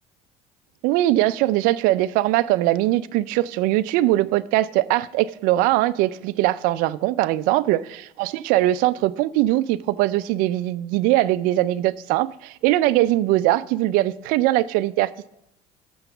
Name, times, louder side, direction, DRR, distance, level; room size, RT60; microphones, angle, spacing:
voice 1, 0.8-7.8 8.2-15.3, right 16 dB, 70° right, 0.4 m, -21 dB
6.9 x 5.8 x 6.9 m
supercardioid pair, 90°, 15 cm